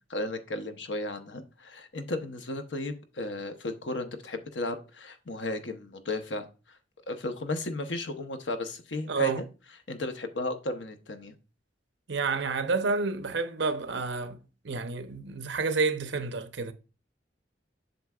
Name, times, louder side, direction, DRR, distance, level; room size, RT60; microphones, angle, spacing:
voice 1, 0.1-6.8 7.1-9.4 9.9-11.3, left 2 dB, 80° left, 0.9 m, -34 dB
voice 2, 9.1-9.4 12.1-14.4 14.6-16.7, right 4 dB, 75° right, 0.8 m, -29 dB
7.8 x 5.9 x 2.4 m
head